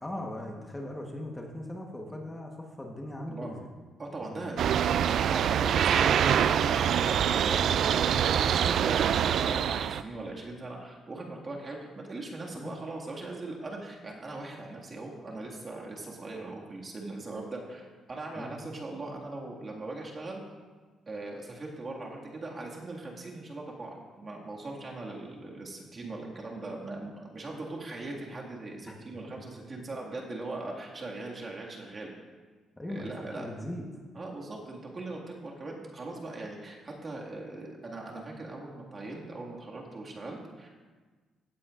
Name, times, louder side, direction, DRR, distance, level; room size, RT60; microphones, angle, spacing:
voice 1, 0.0-3.7 4.3-4.8 12.5-12.8 18.4-18.5 28.9-29.0 29.3-29.4 32.8-33.9, left 1 dB, 15° left, 1 dB, 1.1 m, -39 dB
voice 2, 4.0-4.6 5.3-20.4 21.1-32.1 32.9-33.5 34.2-40.9, right 2 dB, 35° right, -2 dB, 1.9 m, -40 dB
sound 1, 4.6-10.0, right 9 dB, 70° right, 0.3 m, -25 dB
16.0 x 8.4 x 2.5 m, 1.4 s
cardioid pair, 90°, 0 cm